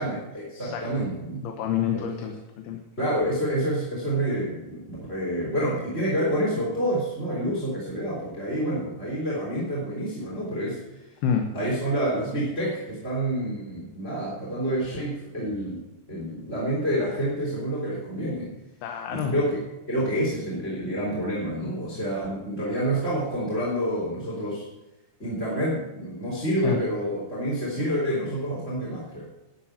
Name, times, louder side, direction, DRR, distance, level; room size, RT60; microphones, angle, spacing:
voice 1, 0.0-1.4 1.9-2.0 3.0-10.8 11.5-15.8 16.1-18.5 19.1-19.6 19.9-24.6 25.2-29.3, right 1 dB, 15° left, -7 dB, 3.5 m, -28 dB
voice 2, 0.6-1.1 1.4-2.8 11.2-11.5 18.8-19.4 26.6-26.8, left 8 dB, 75° left, 4 dB, 3.0 m, -28 dB
12.0 x 8.4 x 8.6 m, 1.0 s
omnidirectional pair, 4.7 m